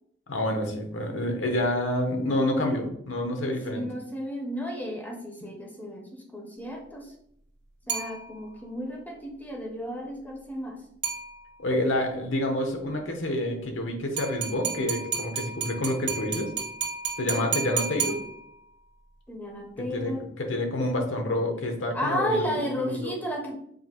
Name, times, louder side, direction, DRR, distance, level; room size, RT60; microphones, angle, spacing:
voice 1, 0.3-3.8 11.6-16.5 17.2-18.1 19.9-22.5 22.8-23.2, left 1 dB, 85° left, 3 dB, 0.8 m, -28 dB
voice 2, 3.7-7.1 7.9-10.8 19.3-20.2 21.9-23.5, equal, 10° left, 1 dB, 0.5 m, -33 dB
sound 1, 7.9-8.7 11.0-11.8 14.2-18.8, right 6 dB, 65° right, 0.9 m, -33 dB
5.0 x 2.5 x 2.8 m, 0.72 s
head